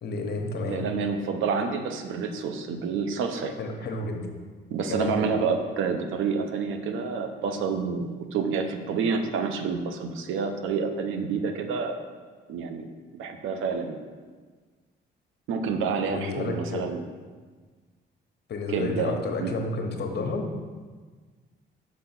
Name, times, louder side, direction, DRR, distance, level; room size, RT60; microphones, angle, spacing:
voice 1, 0.0-0.9 3.6-4.3 4.9-5.1 16.1-16.8 18.5-20.5, left 3 dB, 55° left, 3 dB, 1.1 m, -31 dB
voice 2, 0.6-3.5 4.7-12.0 12.5-14.0 15.5-17.0 18.7-19.5, right 5 dB, 85° right, 6 dB, 0.7 m, -28 dB
6.3 x 4.1 x 5.8 m, 1.5 s
cardioid pair, 90°, 20 cm